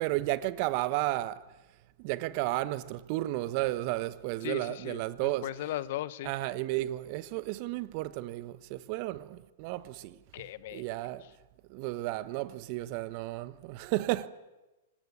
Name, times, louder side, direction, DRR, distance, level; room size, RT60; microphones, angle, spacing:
voice 1, 0.0-1.4 2.0-5.5 6.2-10.2 10.7-11.2 11.7-14.3, right 17 dB, 45° right, 1.1 m, -33 dB
voice 2, 4.4-5.0 5.4-6.3 10.3-10.8, left 14 dB, 55° left, 1.0 m, -37 dB
25.5 x 19.5 x 8.5 m
hypercardioid pair, 110°, 0 cm